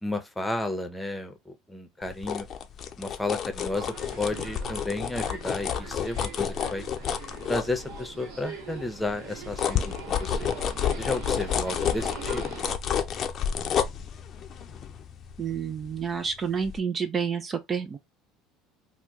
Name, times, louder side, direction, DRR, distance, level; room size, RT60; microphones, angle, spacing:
voice 1, 0.0-2.5 3.0-6.8 7.5-10.5 11.0-12.4, left 2 dB, 10° left, 0.8 m, -32 dB
sound 1, 2.0-8.3 8.7-16.3 16.6-16.8, left 8 dB, 50° left, 0.6 m, -30 dB
Subway metro underground, 3.7-12.7, right 6 dB, 75° right, 1.2 m, -42 dB
voice 2, 15.4-18.0, right 6 dB, 35° right, 0.4 m, -29 dB
3.0 x 2.2 x 3.5 m
supercardioid pair, 90°, 0 cm